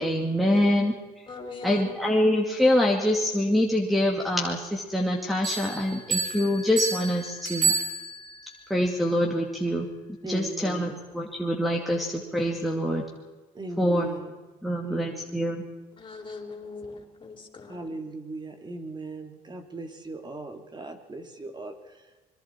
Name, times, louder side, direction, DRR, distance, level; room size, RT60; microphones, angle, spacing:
voice 1, 0.0-1.2 1.6-7.7 8.7-9.9 10.2-13.0 13.8-14.1 14.6-15.6, left 1 dB, ahead, -2 dB, 2.5 m, -25 dB
voice 2, 1.3-1.9 15.9-17.9, left 4 dB, 30° left, 1 dB, 4.6 m, -40 dB
Bell, 5.4-8.5, right 5 dB, 55° right, 6.9 m, -29 dB
voice 3, 10.2-11.0 13.5-14.4 14.8-15.5 17.7-22.0, right 2 dB, 25° right, 5 dB, 2.7 m, -39 dB
26.0 x 22.5 x 4.6 m, 1.2 s
cardioid pair, 110°, 17 cm